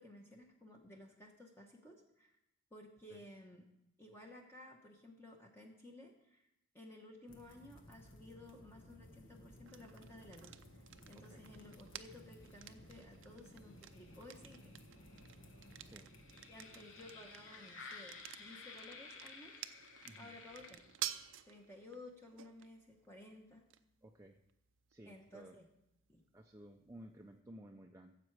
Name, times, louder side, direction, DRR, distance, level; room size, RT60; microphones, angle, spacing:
voice 1, 0.0-2.4 2.7-3.7 4.0-6.5 6.7-14.8 16.5-19.6 20.2-20.8 21.5-23.6 25.1-25.7 26.1-26.2, left 1 dB, 10° left, 0 dB, 1.0 m, -56 dB
sound 1, 7.3-21.2, left 3 dB, 70° left, 1.4 m, -56 dB
Popcorn Foley, 9.7-27.4, right 12 dB, 70° right, 0.5 m, -52 dB
voice 2, 20.0-20.4 24.0-24.4 24.9-25.6 26.3-28.1, right 1 dB, 15° right, 2 dB, 0.5 m, -56 dB
15.0 x 7.5 x 4.7 m, 0.86 s
head